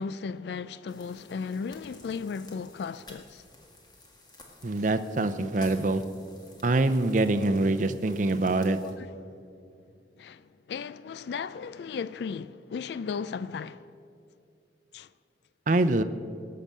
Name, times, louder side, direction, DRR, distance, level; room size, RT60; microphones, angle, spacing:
voice 1, 0.0-3.4 8.8-9.1 10.2-13.9 14.9-15.1, left 5 dB, 70° left, 0.3 m, -36 dB
sound 1, 0.9-8.9, left 2 dB, 25° left, 1.6 m, -53 dB
voice 2, 4.6-6.0 6.6-8.8 15.7-16.0, right 2 dB, 45° right, 0.6 m, -24 dB
18.0 x 6.8 x 7.4 m
head